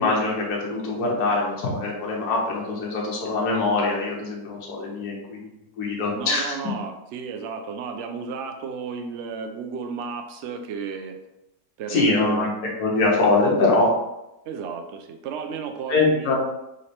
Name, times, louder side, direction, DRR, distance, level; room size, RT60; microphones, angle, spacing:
voice 1, 0.0-5.4 5.8-6.5 11.9-12.5 12.8-13.9 15.9-16.3, left 3 dB, 65° left, -2 dB, 1.5 m, -23 dB
voice 2, 6.1-11.2 11.8-12.5 14.5-16.3, right 5 dB, 90° right, 5 dB, 0.6 m, -33 dB
3.8 x 3.2 x 4.2 m, 0.89 s
omnidirectional pair, 1.8 m